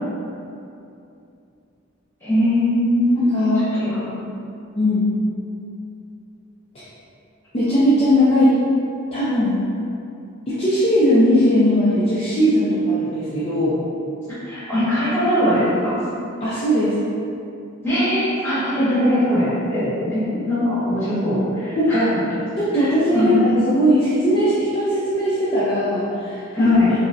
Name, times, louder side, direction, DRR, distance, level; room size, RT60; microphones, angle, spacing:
voice 1, 2.2-3.3 3.7-4.0 8.3-8.4 14.4-16.0 17.8-22.1 22.7-23.4 26.5-26.9, left 1 dB, 10° left, -12 dB, 1.1 m, -20 dB
voice 2, 3.2-3.6 4.7-5.0 7.5-8.5 9.1-9.6 10.5-13.8 16.4-16.9 21.8-22.2 22.6-26.7, equal, 30° left, -10 dB, 0.4 m, -19 dB
4.7 x 2.0 x 2.5 m, 2.6 s
head